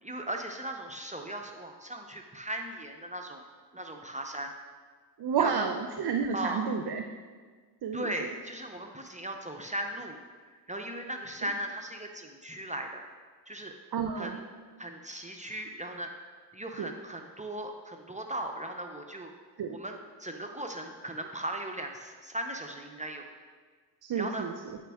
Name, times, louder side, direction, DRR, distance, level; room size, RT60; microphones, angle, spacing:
voice 1, 0.0-3.4 3.7-4.5 5.4-5.7 6.3-6.7 7.9-10.2 10.5-13.0 13.5-13.8 14.2-14.4 14.8-19.3 19.7-23.3 24.1-24.5, right 1 dB, 20° right, 3 dB, 0.6 m, -38 dB
voice 2, 5.2-7.0 7.8-8.1 13.9-14.4 16.8-16.9 19.6-19.8 24.0-24.8, right 6 dB, 65° right, 5 dB, 0.6 m, -31 dB
8.7 x 5.0 x 3.5 m, 1.5 s
cardioid pair, 65°, 41 cm